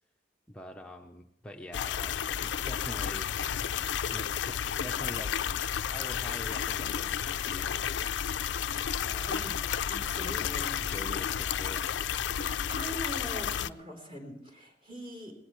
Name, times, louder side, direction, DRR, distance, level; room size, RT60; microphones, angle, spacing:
voice 1, 0.5-3.4 3.7-5.3 5.9-7.8 9.0-9.5 10.8-11.8, left 1 dB, 5° left, 2 dB, 0.7 m, -45 dB
sound 1, 1.7-13.7, left 8 dB, 85° left, 0.4 m, -32 dB
voice 2, 3.4-3.9 9.3-9.6 9.9-10.8 12.3-15.3, equal, 35° right, 1 dB, 3.6 m, -42 dB
19.0 x 18.0 x 3.1 m, 0.83 s
head